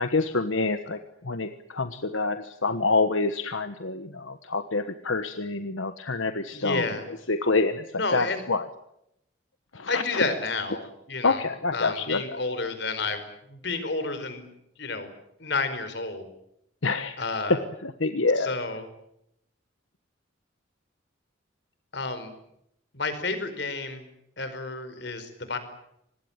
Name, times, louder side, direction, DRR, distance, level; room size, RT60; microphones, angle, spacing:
voice 1, 0.0-6.8 7.3-7.8 8.1-8.6 9.7-10.2 11.2-12.4 16.8-17.2 17.8-18.5, left 3 dB, 85° left, 9 dB, 1.3 m, -27 dB
voice 2, 6.5-7.1 8.0-8.4 9.9-11.4 11.7-14.4 14.8-15.1 15.4-16.3 17.2-17.6 18.4-18.9 21.9-22.3 22.9-24.1 24.4-25.6, left 3 dB, 60° left, 10 dB, 4.9 m, -30 dB
25.5 x 20.5 x 9.0 m, 0.79 s
head